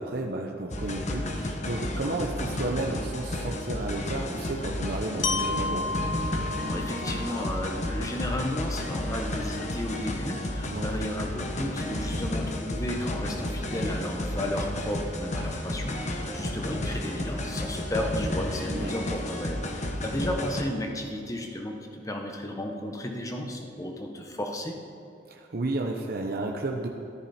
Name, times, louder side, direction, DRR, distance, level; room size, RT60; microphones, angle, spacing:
voice 1, 0.0-5.9 10.7-10.9 18.7-18.9 25.3-26.9, right 2 dB, 55° right, 1 dB, 0.8 m, -32 dB
sound 1, 0.7-20.6, left 1 dB, 40° left, 1.0 m, -32 dB
Glockenspiel, 5.2-9.2, left 3 dB, 80° left, 0.8 m, -33 dB
voice 2, 6.6-24.7, left 1 dB, 20° left, 2 dB, 1.1 m, -33 dB
13.5 x 10.5 x 4.3 m, 2.7 s
head